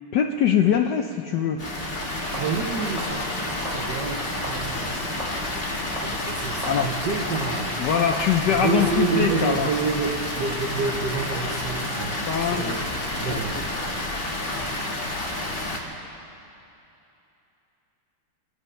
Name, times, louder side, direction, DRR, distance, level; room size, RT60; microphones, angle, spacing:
voice 1, 0.1-1.6 6.6-6.9 7.8-9.7 12.3-12.9 13.3-13.4, left 8 dB, 70° left, 4 dB, 1.0 m, -23 dB
Water, 1.6-15.8, left 1 dB, 30° left, 1.5 m, -30 dB
sound 1, 2.3-9.6, equal, 15° right, 3.5 m, -40 dB
voice 2, 2.3-5.6 6.0-7.8 8.5-12.9 13.2-13.6, right 5 dB, 60° right, 3 dB, 1.4 m, -29 dB
25.0 x 10.0 x 5.5 m, 2.9 s
omnidirectional pair, 2.4 m